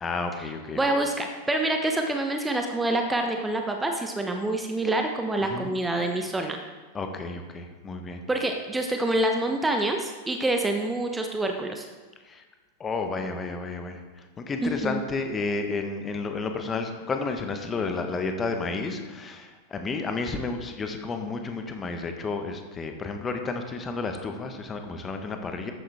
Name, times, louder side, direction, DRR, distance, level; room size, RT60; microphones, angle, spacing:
voice 1, 0.0-0.8 5.4-5.7 6.9-8.2 12.3-12.4 12.8-14.0 14.4-25.7, left 3 dB, 20° left, 5 dB, 1.3 m, -31 dB
voice 2, 0.8-6.6 8.3-11.9 14.6-15.0, right 2 dB, 10° right, 3 dB, 1.0 m, -26 dB
13.0 x 10.0 x 3.6 m, 1.3 s
figure-of-eight pair, 90°, 0 cm